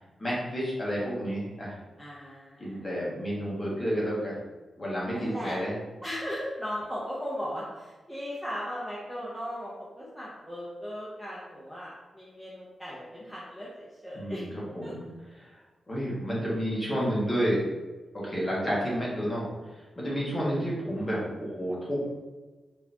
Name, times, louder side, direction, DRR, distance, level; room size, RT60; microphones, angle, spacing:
voice 1, 0.2-1.8 2.6-4.3 4.8-5.7 14.1-15.1 15.4-15.5 15.9-17.6 18.1-22.1, equal, 15° left, -6 dB, 1.2 m, -30 dB
voice 2, 2.0-2.9 5.1-5.6 6.0-14.4 14.8-14.9, equal, ahead, -8 dB, 0.7 m, -37 dB
4.7 x 2.7 x 3.4 m, 1.2 s
wide cardioid pair, 180°, 0 cm